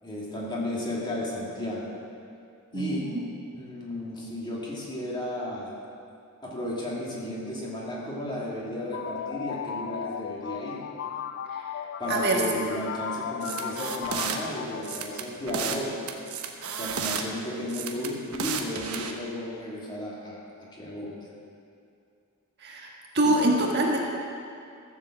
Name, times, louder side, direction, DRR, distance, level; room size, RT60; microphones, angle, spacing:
voice 1, 0.0-1.9 2.7-3.1 3.5-5.7 6.4-10.8 12.0-16.1 16.7-21.3 23.2-23.3, left 1 dB, 20° left, -5 dB, 2.5 m, -34 dB
voice 2, 2.7-3.2 11.5-11.7 12.1-12.4 22.6-22.9 23.1-24.0, right 1 dB, 50° right, -1 dB, 1.5 m, -25 dB
sound 1, 8.7-15.5, left 8 dB, 50° left, 0.3 m, -36 dB
sound 2, 13.4-14.4 14.8-15.8 16.1-17.2 17.7-19.1, right 6 dB, 75° right, 1.1 m, -32 dB
14.0 x 7.4 x 7.5 m, 2.5 s
head